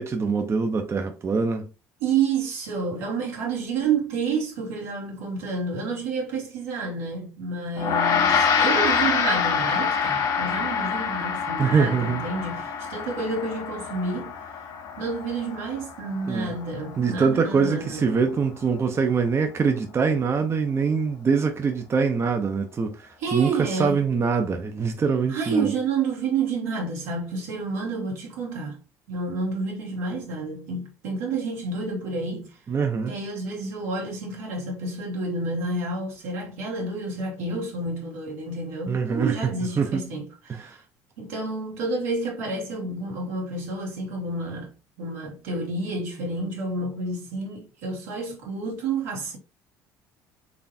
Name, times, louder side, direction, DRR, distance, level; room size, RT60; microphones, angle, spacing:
voice 1, 0.0-1.7 11.6-12.2 16.2-16.5 17.0-25.7 32.7-33.2 38.9-40.1 40.5-40.8, right 5 dB, 35° right, 0.7 m, -24 dB
voice 2, 2.0-14.3 15.0-18.1 23.2-24.0 25.3-28.8 29.1-32.6 33.1-40.8 41.2-49.4, right 3 dB, 85° right, 2.0 m, -29 dB
Gong, 7.8-17.3, left 6 dB, 60° left, 1.1 m, -26 dB
4.1 x 3.3 x 2.7 m
hypercardioid pair, 75°, 8 cm